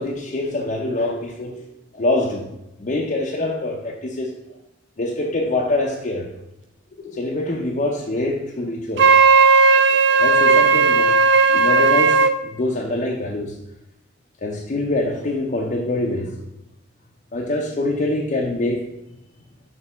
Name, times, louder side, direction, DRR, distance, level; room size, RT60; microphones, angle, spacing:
voice 1, 0.0-1.6 1.9-2.5 2.8-4.3 5.0-6.3 7.0-9.1 10.2-11.2 11.5-13.5 14.4-16.4 17.3-18.9, left 2 dB, 45° left, -2 dB, 0.6 m, -24 dB
Wind instrument woodwind instrument, 9.0-12.3, right 4 dB, 70° right, 0.5 m, -14 dB
6.1 x 3.3 x 5.4 m, 0.92 s
head